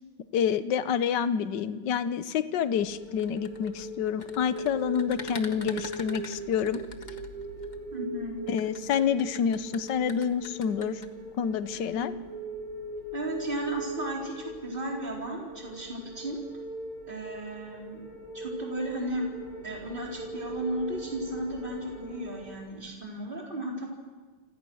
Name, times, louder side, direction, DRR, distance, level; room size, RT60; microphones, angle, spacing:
voice 1, 0.3-6.8 8.5-11.0 11.4-12.1, left 7 dB, 60° left, 13 dB, 1.5 m, -28 dB
sound 1, 2.7-22.7, right 1 dB, 45° right, 7.6 m, -40 dB
sound 2, 3.1-7.8 8.5-11.1, left 3 dB, 25° left, 1.5 m, -43 dB
voice 2, 7.9-8.4 11.7-12.1 13.1-16.4 17.1-18.0 18.3-19.3 19.6-23.9, right 1 dB, 25° right, -1 dB, 4.6 m, -35 dB
29.5 x 26.5 x 6.4 m, 1.4 s
omnidirectional pair, 2.3 m